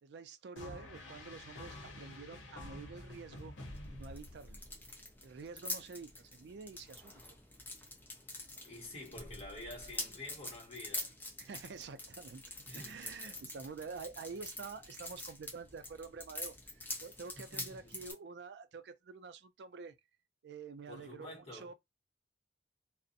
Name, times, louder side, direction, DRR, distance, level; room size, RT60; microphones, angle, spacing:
voice 1, 0.0-3.5 3.9-4.6 5.2-7.3 11.4-20.0 20.4-21.3 21.5-21.7, right 4 dB, 65° right, 0.4 m, -48 dB
sound 1, 0.6-4.8, left 1 dB, 90° left, 0.8 m, -49 dB
sound 2, 3.1-18.1, left 2 dB, 10° left, 0.6 m, -46 dB
voice 2, 8.6-11.1 12.7-13.4 17.4-18.0 20.9-21.7, left 1 dB, 35° left, 1.2 m, -49 dB
2.4 x 2.0 x 2.6 m
head